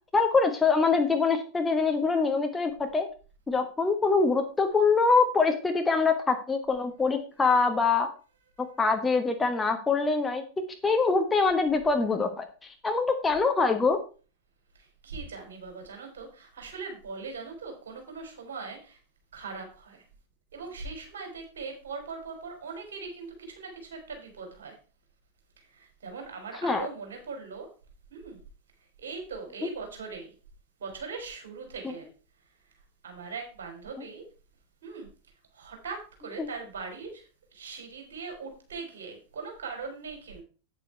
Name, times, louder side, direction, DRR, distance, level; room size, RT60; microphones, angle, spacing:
voice 1, 0.1-3.1 3.5-8.1 8.8-10.4 10.8-14.0 26.6-26.9 36.4-36.5, left 4 dB, 15° left, 5 dB, 1.3 m, -24 dB
voice 2, 14.8-19.0 19.3-20.0 20.5-24.8 25.6-27.7 28.1-28.4 29.0-30.3 30.8-32.1 33.0-34.2 34.8-35.1 35.5-40.4, right 4 dB, 60° right, 3 dB, 4.0 m, -40 dB
8.9 x 7.7 x 4.5 m, 0.36 s
figure-of-eight pair, 90°, 0 cm